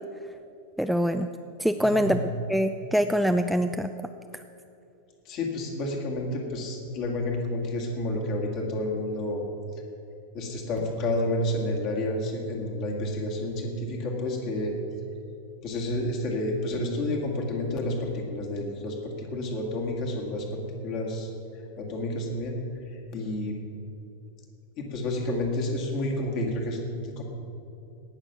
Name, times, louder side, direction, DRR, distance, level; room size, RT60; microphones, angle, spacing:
voice 1, 0.8-1.3 1.6-2.2 2.5-3.9 4.3-4.4, equal, ahead, 7 dB, 0.3 m, -24 dB
voice 2, 1.8-2.2 5.2-9.5 9.7-9.8 10.3-14.8 15.6-22.6 22.8-23.6 24.8-27.2, left 1 dB, 40° left, 1 dB, 2.1 m, -30 dB
17.5 x 6.5 x 5.9 m, 2.8 s
figure-of-eight pair, 90°, 0 cm